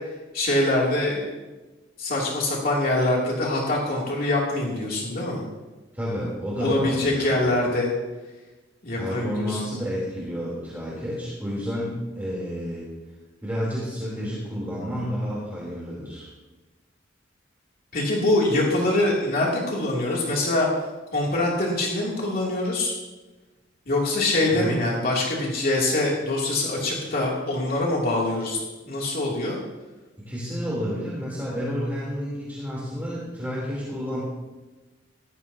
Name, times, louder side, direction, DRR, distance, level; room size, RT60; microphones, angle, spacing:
voice 1, 0.3-1.2 2.0-5.4 6.6-7.9 8.8-9.6 17.9-20.7 21.1-22.9 23.9-28.6 28.9-29.6, left 2 dB, 50° left, -4 dB, 2.7 m, -24 dB
voice 2, 5.9-7.6 9.0-12.9 13.4-16.3 24.5-24.8 30.2-34.2, equal, 10° right, -7 dB, 3.3 m, -30 dB
17.5 x 15.5 x 2.8 m, 1.2 s
head